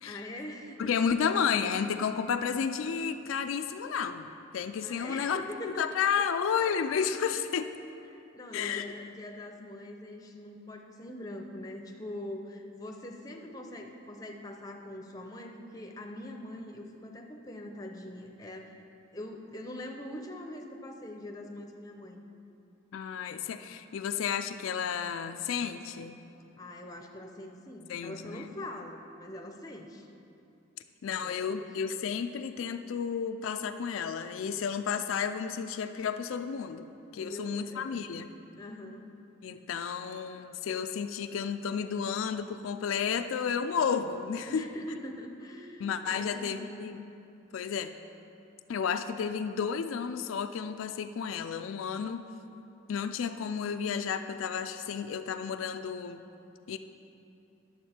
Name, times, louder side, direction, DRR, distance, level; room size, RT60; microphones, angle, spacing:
voice 1, 0.0-1.0 4.8-6.3 8.1-18.7 19.1-22.2 26.6-30.1 31.1-31.7 37.2-38.0 38.5-39.1 44.5-46.9, left 1 dB, 20° left, 3 dB, 0.6 m, -43 dB
voice 2, 0.8-7.7 8.5-8.9 22.9-26.2 27.9-28.5 31.0-38.3 39.4-44.7 45.8-47.0 47.5-47.9 48.7-52.3 52.9-56.2 56.7-56.8, left 7 dB, 80° left, 8 dB, 0.3 m, -32 dB
11.0 x 7.2 x 4.3 m, 2.8 s
head